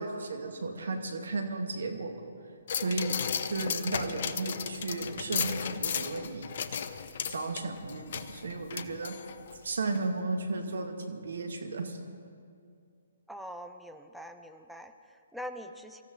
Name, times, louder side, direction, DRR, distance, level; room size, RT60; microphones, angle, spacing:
voice 1, 0.0-2.1 2.7-3.2 3.5-6.5 7.3-9.2 9.6-12.0, right 3 dB, 65° right, 5 dB, 2.1 m, -34 dB
sound 1, 2.7-9.6 9.9-10.0, left 7 dB, 50° left, 0.8 m, -35 dB
voice 2, 13.3-16.0, equal, ahead, 5 dB, 0.8 m, -43 dB
24.5 x 14.5 x 4.0 m, 2.3 s
figure-of-eight pair, 130°, 0 cm